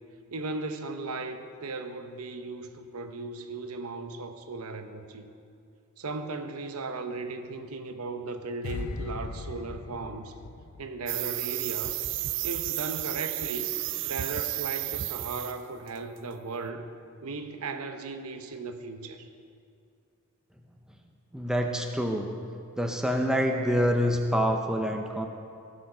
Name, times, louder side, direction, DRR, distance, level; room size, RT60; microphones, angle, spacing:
voice 1, 0.3-5.3 6.0-10.4 10.8-12.0 12.4-13.7 14.0-16.9 17.2-19.3, right 3 dB, 85° right, 7 dB, 0.8 m, -36 dB
sound 1, 8.6-11.8 12.1-12.4, left 3 dB, 85° left, 0.7 m, -39 dB
sound 2, 11.1-15.6 15.9-16.2, right 16 dB, 55° right, 0.4 m, -32 dB
voice 2, 21.3-22.3 22.8-25.3, equal, 5° right, 3 dB, 0.6 m, -26 dB
16.0 x 7.2 x 5.5 m, 2.4 s
head